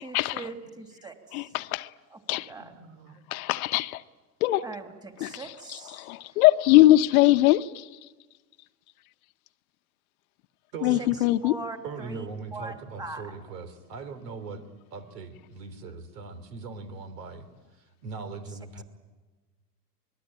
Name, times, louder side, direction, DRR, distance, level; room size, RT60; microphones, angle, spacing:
voice 1, 0.0-1.5 2.1-2.7 4.6-6.2 11.0-11.1 11.4-13.6, right 3 dB, 10° right, 2.8 m, -41 dB
voice 2, 1.3-1.9 2.3-2.5 3.3-4.0 4.4-4.6 5.2-5.3 6.0-7.8 10.8-11.5, left 16 dB, 60° left, 1.0 m, -21 dB
voice 3, 2.6-3.2 10.7-11.0 11.8-14.6 14.9-17.5 18.0-18.8, right 4 dB, 75° right, 3.8 m, -40 dB
26.5 x 21.0 x 8.9 m
hypercardioid pair, 115°, 48 cm